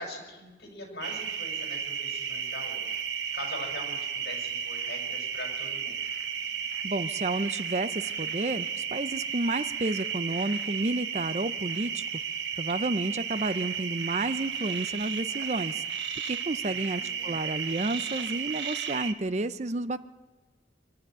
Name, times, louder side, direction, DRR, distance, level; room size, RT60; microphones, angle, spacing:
voice 1, 0.0-6.0 16.7-17.4, left 1 dB, 65° left, 2 dB, 6.2 m, -42 dB
sound 1, 1.0-19.1, right 7 dB, 80° right, 1.5 m, -33 dB
voice 2, 6.8-12.0 12.6-15.8 16.2-20.0, right 2 dB, 40° right, 14 dB, 0.6 m, -31 dB
24.5 x 12.5 x 9.2 m, 1.2 s
head